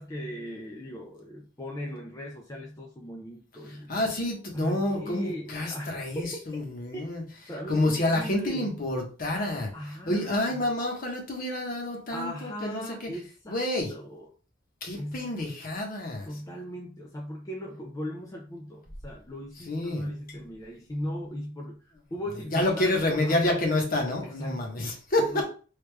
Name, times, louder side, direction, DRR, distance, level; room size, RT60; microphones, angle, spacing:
voice 1, 0.0-4.1 4.5-6.3 6.9-7.1 7.5-8.8 9.7-10.7 12.1-13.6 13.9-14.3 15.0-15.3 16.2-23.7 24.2-24.7 25.2-25.4, equal, 15° left, -1 dB, 0.4 m, -38 dB
voice 2, 3.9-7.2 7.7-9.7 10.1-12.8 13.5-13.9 14.8-16.3 19.7-20.1 22.5-25.4, left 1 dB, 45° left, 1 dB, 1.0 m, -28 dB
3.3 x 2.4 x 3.3 m, 0.37 s
head